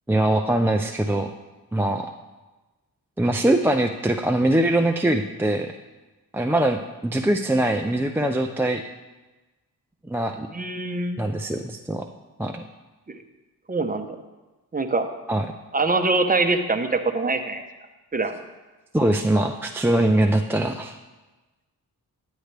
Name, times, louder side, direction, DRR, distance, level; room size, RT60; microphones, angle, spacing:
voice 1, 0.1-1.3 1.7-2.1 3.2-5.7 6.3-8.8 10.1-10.5 11.2-12.1 12.4-12.7 15.3-15.5 18.9-21.0, right 1 dB, 5° right, 3 dB, 0.4 m, -22 dB
voice 2, 10.5-11.3 13.1-13.2 13.7-14.2 14.7-15.1 15.7-17.6 18.1-18.3, right 3 dB, 20° right, 6 dB, 0.8 m, -24 dB
10.0 x 8.1 x 3.3 m, 1.1 s
cardioid pair, 60°, 40 cm